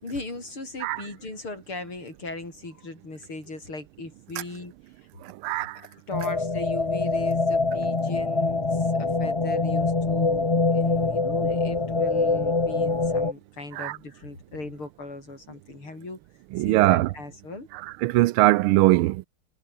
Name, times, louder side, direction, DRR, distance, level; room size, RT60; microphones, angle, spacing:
voice 1, 0.0-4.7 5.6-16.2 16.6-17.7, left 2 dB, 80° left, 8.4 m, -38 dB
voice 2, 5.2-5.8 13.8-14.0 16.5-17.1 18.0-19.3, right 18 dB, 85° right, 1.5 m, -21 dB
sound 1, 6.1-13.3, left 3 dB, 20° left, 0.9 m, -24 dB
omnidirectional pair, 2.3 m